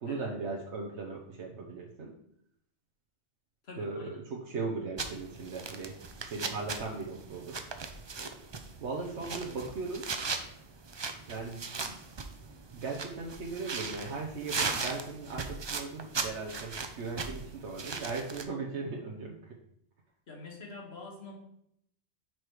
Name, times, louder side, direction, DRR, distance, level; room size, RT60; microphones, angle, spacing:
voice 1, 0.0-2.1 3.8-7.7 8.8-10.1 11.3-11.9 12.7-19.5, right 4 dB, 80° right, -1 dB, 1.2 m, -38 dB
voice 2, 3.6-4.2 9.0-9.5 20.3-21.4, left 3 dB, 65° left, 0 dB, 1.7 m, -46 dB
sound 1, 5.0-18.4, right 4 dB, 35° right, 0.4 m, -38 dB
6.0 x 4.9 x 4.6 m, 0.74 s
omnidirectional pair, 1.1 m